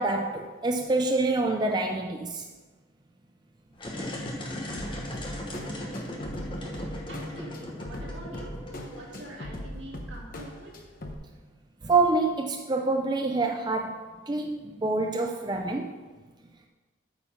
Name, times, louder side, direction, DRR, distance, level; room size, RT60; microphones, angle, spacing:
voice 1, 0.0-2.4 11.8-15.9, right 3 dB, 20° right, 2 dB, 0.4 m, -26 dB
sound 1, 3.7-9.6, left 1 dB, 25° left, 1.2 m, -37 dB
sound 2, 4.7-11.1, left 1 dB, 45° left, 1.0 m, -40 dB
voice 2, 7.1-8.5 8.8-10.7, right 1 dB, 75° right, -4 dB, 2.5 m, -45 dB
8.7 x 5.4 x 5.6 m, 1.3 s
head